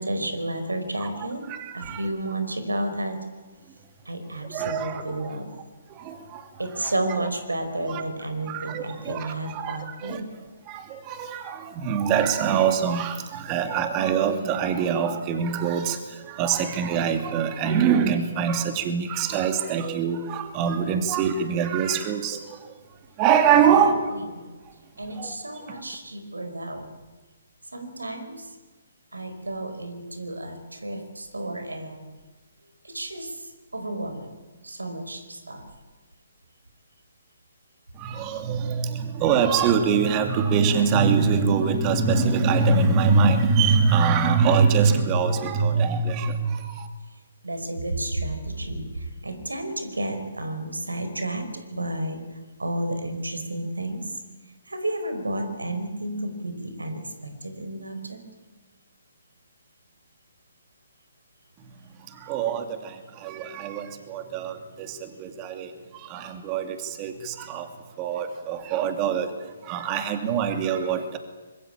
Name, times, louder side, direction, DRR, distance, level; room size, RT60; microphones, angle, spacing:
voice 1, 0.0-1.4 1.7-3.2 4.0-5.5 6.6-10.3 23.7-24.4 25.0-26.9 27.7-28.5 29.1-32.1 32.8-34.3 34.6-35.6 47.4-52.2 52.6-54.0 54.6-58.2, right 1 dB, 90° right, 8 dB, 4.8 m, -32 dB
voice 2, 1.5-2.1 4.5-5.3 5.9-6.5 6.8-6.9 7.8-8.0 8.5-10.2 10.7-22.7 23.2-24.1 25.2-25.4 38.0-46.9 62.1-67.7 68.0-69.3 69.6-71.2, right 6 dB, 25° right, 8 dB, 2.5 m, -24 dB
25.0 x 21.5 x 8.9 m, 1.3 s
figure-of-eight pair, 140°, 0 cm